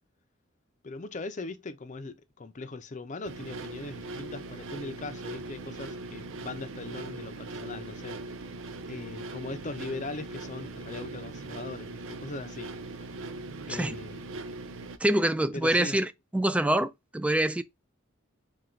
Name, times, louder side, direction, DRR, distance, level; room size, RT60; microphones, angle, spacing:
voice 1, 0.8-8.2 8.9-12.7 13.7-14.2 15.5-16.0, left 3 dB, 40° left, 0.6 m, -40 dB
sound 1, 3.2-15.0, right 2 dB, 70° right, 0.5 m, -40 dB
voice 2, 15.0-17.6, right 1 dB, 5° right, 0.3 m, -26 dB
4.4 x 2.4 x 3.8 m
head